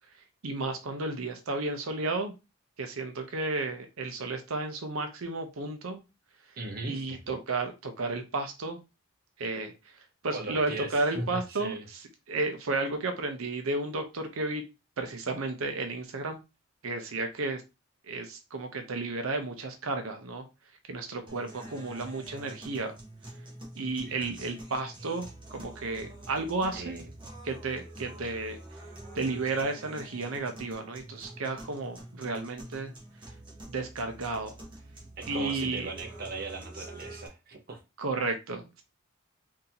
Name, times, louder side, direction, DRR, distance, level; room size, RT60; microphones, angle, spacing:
voice 1, 0.4-2.3 2.8-6.0 6.5-6.6 6.8-8.8 9.4-14.6 15.0-16.4 16.8-17.6 18.1-20.5 20.9-22.9 23.8-27.0 27.4-28.6 29.1-32.9 33.7-34.6 35.3-35.9 38.0-38.8, right 3 dB, 80° right, 0.6 m, -33 dB
voice 2, 6.6-7.2 10.3-11.9 24.0-24.4 26.7-27.1 35.2-37.8, right 3 dB, 45° right, 0.8 m, -38 dB
sound 1, 21.3-37.3, right 1 dB, 25° right, 1.0 m, -46 dB
3.9 x 2.7 x 2.8 m
head